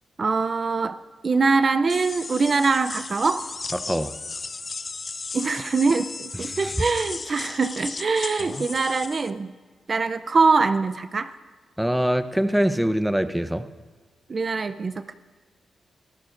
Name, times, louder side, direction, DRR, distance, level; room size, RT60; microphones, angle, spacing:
voice 1, 0.2-1.0 1.2-3.5 5.3-9.5 9.9-11.3 14.3-15.1, right 4 dB, 50° right, 11 dB, 0.5 m, -23 dB
sound 1, 1.9-9.3, left 4 dB, 40° left, 0.6 m, -35 dB
voice 2, 11.8-13.7, equal, 5° right, 11 dB, 0.7 m, -23 dB
24.5 x 13.5 x 2.5 m, 1.4 s
cardioid pair, 60°, 0 cm